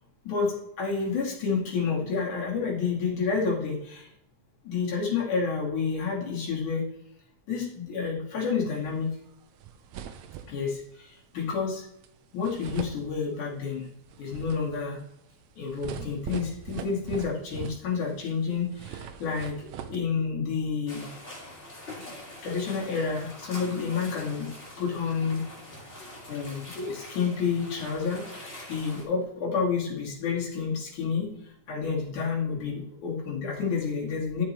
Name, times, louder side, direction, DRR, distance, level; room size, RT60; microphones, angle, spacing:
voice 1, 0.3-4.1 4.6-6.8 7.5-9.1 10.5-11.8 12.3-13.9 14.2-15.0 15.6-19.6 19.9-21.1 22.4-24.5 24.8-25.4 26.3-31.3 31.7-34.4, left 5 dB, 80° left, -4 dB, 4.0 m, -29 dB
sound 1, 9.3-9.4 9.6-10.8 12.0-12.1 12.4-13.6 14.0-18.2 18.5-20.0, right 8 dB, 75° right, 1.9 m, -41 dB
sound 2, 20.9-29.0, left 1 dB, 25° left, 2.5 m, -44 dB
12.0 x 6.5 x 3.1 m, 0.76 s
omnidirectional pair, 3.4 m